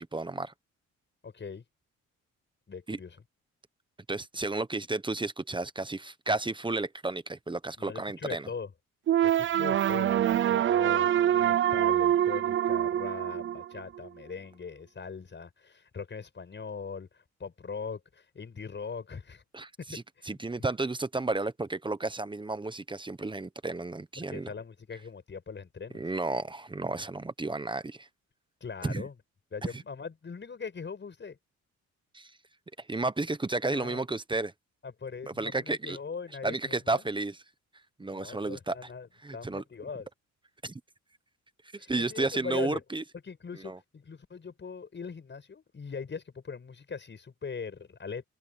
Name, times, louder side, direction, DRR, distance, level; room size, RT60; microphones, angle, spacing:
voice 1, 0.1-0.5 2.9-3.0 4.1-8.5 19.5-24.5 25.9-28.1 28.8-29.0 29.6-29.8 32.1-32.3 32.8-34.5 35.3-36.0 36.4-37.4 38.0-38.9 39.2-39.6 40.6-40.8 41.7-43.0 43.5-43.8, right 2 dB, 15° right, 1.1 m, -32 dB
voice 2, 1.2-1.6 2.7-3.2 7.8-8.7 9.2-19.4 20.2-20.7 24.2-26.0 28.6-29.1 29.5-31.4 33.6-34.0 34.8-37.0 38.0-39.1 39.3-40.1 41.8-42.8 43.2-48.2, left 5 dB, 40° left, 6.3 m, -41 dB
sound 1, 9.1-14.1, right 11 dB, 40° right, 0.4 m, -25 dB
open air
cardioid pair, 90°, 30 cm